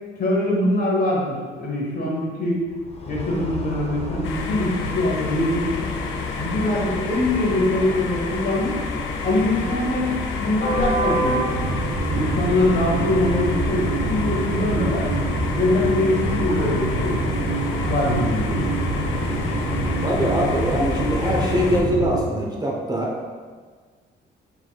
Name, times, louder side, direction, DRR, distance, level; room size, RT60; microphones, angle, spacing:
voice 1, 0.2-2.6 3.1-5.8 6.4-8.8 9.2-11.7 12.1-15.1 15.5-17.2 17.8-18.7, left 1 dB, 50° left, -3 dB, 1.2 m, -23 dB
sound 1, 2.7-21.8, left 2 dB, 30° left, 0.6 m, -30 dB
sound 2, 4.2-21.8, left 5 dB, 75° left, 0.5 m, -33 dB
sound 3, 11.5-22.2, right 3 dB, 65° right, 0.7 m, -26 dB
voice 2, 20.0-23.1, equal, 20° right, -2 dB, 0.8 m, -23 dB
4.7 x 4.0 x 2.3 m, 1.5 s
cardioid pair, 90°, 20 cm